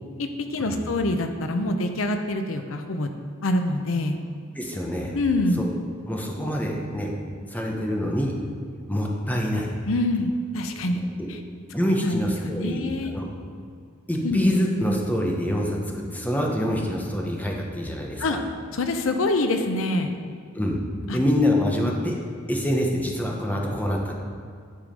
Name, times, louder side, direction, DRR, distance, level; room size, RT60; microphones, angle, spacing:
voice 1, 0.2-3.1 3.4-4.2 5.1-5.6 9.9-11.0 11.3-11.4 12.0-13.2 14.2-14.4 18.2-18.4 18.7-20.2 21.1-21.2 21.8-21.9, left 2 dB, 80° left, 6 dB, 0.7 m, -25 dB
voice 2, 4.5-5.1 5.6-5.7 6.1-7.1 7.5-8.4 8.9-9.7 11.7-12.8 13.1-13.3 14.1-18.4 20.5-20.8 21.1-22.1 22.5-24.1, equal, 10° left, 0 dB, 1.0 m, -25 dB
10.5 x 4.9 x 5.3 m, 2.2 s
head